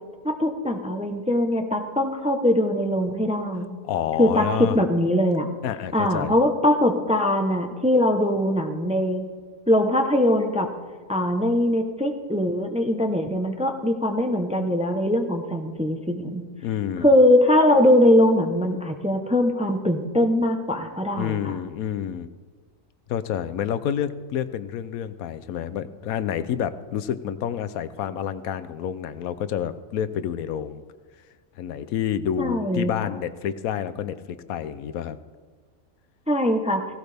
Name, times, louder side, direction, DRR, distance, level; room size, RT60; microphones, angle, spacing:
voice 1, 0.2-3.8 4.2-4.5 4.7-5.5 5.9-9.2 9.7-10.7 11.1-16.4 17.0-21.5 32.4-32.9 36.3-36.8, left 1 dB, 5° right, 4 dB, 0.7 m, -21 dB
voice 2, 3.8-4.8 5.6-6.3 16.6-17.1 21.1-22.3 23.1-30.8 31.6-35.2, left 9 dB, 80° left, 12 dB, 1.1 m, -29 dB
17.0 x 16.0 x 3.4 m, 1.5 s
omnidirectional pair, 1.5 m